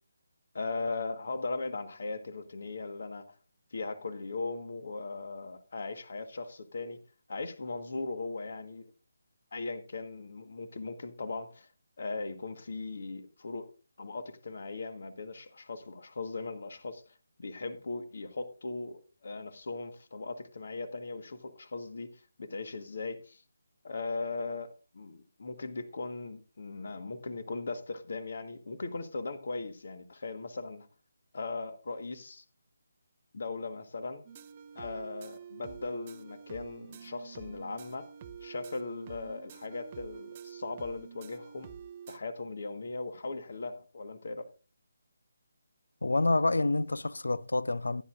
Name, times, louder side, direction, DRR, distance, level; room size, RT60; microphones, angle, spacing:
voice 1, 0.5-3.4 3.7-7.0 7.3-8.9 9.5-11.7 12.0-13.7 14.0-17.0 17.4-23.4 23.8-30.9 31.3-32.4 33.3-34.2 34.7-38.1 38.4-41.7 42.1-44.5, left 3 dB, 50° left, 1.4 m, -38 dB
sound 1, 34.2-42.2, right 7 dB, 25° right, 0.6 m, -48 dB
voice 2, 46.0-48.0, left 2 dB, 65° left, 0.5 m, -28 dB
15.5 x 10.0 x 2.5 m
figure-of-eight pair, 150°, 0 cm